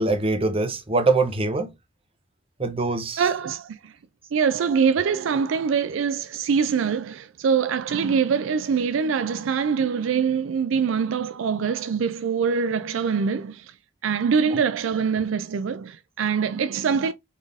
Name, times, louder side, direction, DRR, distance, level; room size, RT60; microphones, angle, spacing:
voice 1, 0.0-1.7 2.6-3.2 14.5-14.6, right 3 dB, 30° right, 1.0 m, -23 dB
voice 2, 3.2-3.9 4.3-13.7 14.0-17.1, right 6 dB, 70° right, 0.4 m, -24 dB
4.2 x 3.6 x 3.3 m
head